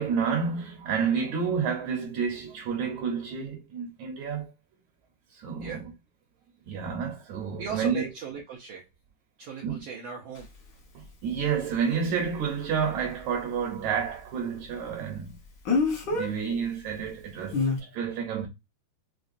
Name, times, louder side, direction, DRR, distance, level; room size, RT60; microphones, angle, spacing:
voice 1, 0.0-4.5 5.3-5.9 6.7-8.1 9.6-9.9 11.0-15.3 16.1-18.5, right 6 dB, 75° right, 1.9 m, -30 dB
voice 2, 7.6-8.8 9.4-10.5, right 6 dB, 90° right, 1.3 m, -38 dB
Speech, 10.4-10.5 15.7-16.3 17.5-17.8, left 4 dB, 70° left, 1.0 m, -25 dB
5.9 x 2.2 x 2.5 m
omnidirectional pair, 3.8 m